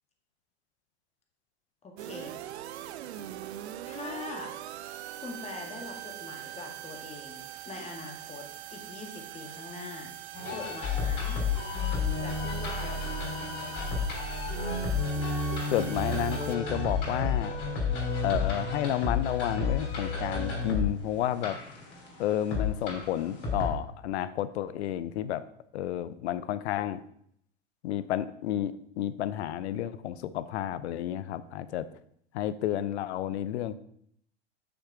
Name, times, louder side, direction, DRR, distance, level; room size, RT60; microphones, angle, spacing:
voice 1, 1.8-2.4 3.8-4.6 5.2-8.5 8.7-11.4 12.2-13.3, left 3 dB, 20° left, 1 dB, 1.9 m, -43 dB
sound 1, 2.0-16.6, right 13 dB, 70° right, 0.7 m, -43 dB
sound 2, 10.3-23.7, left 4 dB, 35° left, 3.6 m, -31 dB
voice 2, 15.7-17.5 18.2-21.6 22.2-25.4 25.7-27.0 27.8-31.9 32.3-33.7, left 11 dB, 70° left, 15 dB, 0.7 m, -31 dB
6.5 x 6.2 x 4.8 m, 0.71 s
hypercardioid pair, 100°, 34 cm